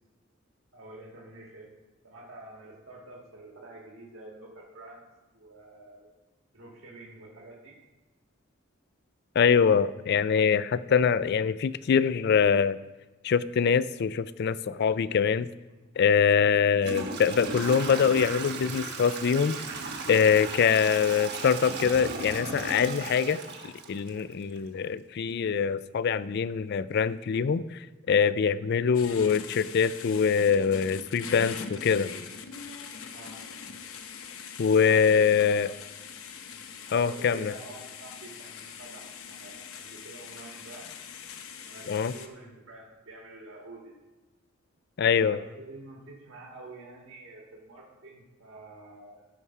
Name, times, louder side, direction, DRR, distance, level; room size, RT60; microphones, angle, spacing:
voice 1, 0.7-1.7 2.0-5.1 5.3-6.1 6.5-7.7 33.1-33.4 34.8-35.7 36.5-41.0 41.6-44.0 45.1-49.3, right 2 dB, 70° right, -1 dB, 1.8 m, -48 dB
voice 2, 9.4-12.8 13.2-15.5 16.0-19.6 20.1-27.6 28.1-32.1 34.6-35.7 36.9-37.5 41.9-42.1 45.0-45.4, left 6 dB, 50° left, 16 dB, 0.3 m, -24 dB
Toilet flush / Trickle dribble, 16.0-16.1 16.8-24.6, right 3 dB, 50° right, 1.3 m, -36 dB
sound 1, 28.9-42.3, left 6 dB, 85° left, 0.8 m, -42 dB
14.0 x 4.8 x 5.6 m, 1.1 s
head